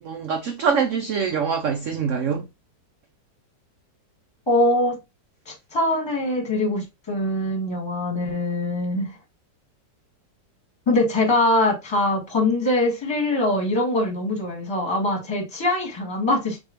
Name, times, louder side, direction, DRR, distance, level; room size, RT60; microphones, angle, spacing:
voice 1, 0.0-2.5, right 6 dB, 85° right, 0.6 m, -24 dB
voice 2, 4.5-5.0 5.5-9.1 10.9-16.6, left 1 dB, 15° left, 1.2 m, -23 dB
4.1 x 2.7 x 2.9 m
omnidirectional pair, 1.9 m